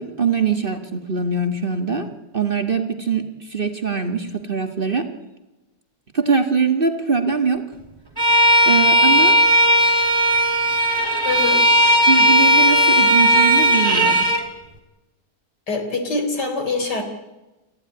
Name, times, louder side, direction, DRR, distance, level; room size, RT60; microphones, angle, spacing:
voice 1, 0.0-2.1 2.3-5.1 6.1-7.6 8.7-9.4 12.1-14.3, right 5 dB, 30° right, 6 dB, 1.8 m, -22 dB
Bowed string instrument, 8.2-14.4, equal, 15° right, 2.9 m, -16 dB
voice 2, 11.2-11.6 15.7-17.0, left 3 dB, 70° left, 6 dB, 4.3 m, -24 dB
28.5 x 15.0 x 9.7 m, 1.1 s
omnidirectional pair, 1.8 m